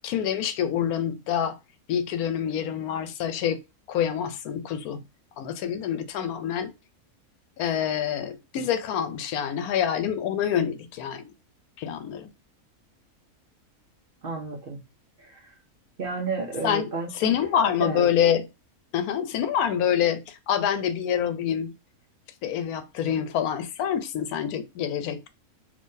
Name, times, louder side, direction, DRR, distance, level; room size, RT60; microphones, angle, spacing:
voice 1, 0.0-1.6 1.9-3.6 3.9-5.0 5.4-6.7 7.6-11.2 11.8-12.3 16.6-18.4 18.9-21.7 22.4-25.3, left 9 dB, 90° left, 1.1 m, -26 dB
voice 2, 14.2-14.8 15.2-15.5 16.0-18.1, right 4 dB, 55° right, 0.6 m, -32 dB
3.6 x 2.8 x 2.6 m
omnidirectional pair, 1.5 m